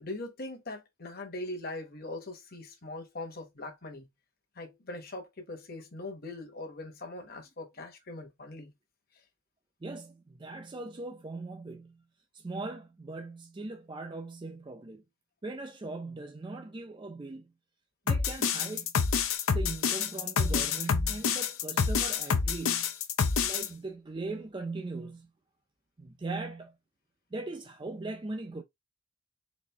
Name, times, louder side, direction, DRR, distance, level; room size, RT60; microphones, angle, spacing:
voice 1, 0.0-4.1 4.5-8.7, left 2 dB, 45° left, 1.1 m, -41 dB
voice 2, 9.8-12.0 12.3-15.0 15.4-17.5 18.1-18.9 19.5-22.9 23.4-25.3 26.0-26.8 27.3-28.6, right 3 dB, 20° right, 0.4 m, -39 dB
sound 1, 18.1-23.7, left 6 dB, 75° left, 0.6 m, -27 dB
4.2 x 2.6 x 3.3 m
head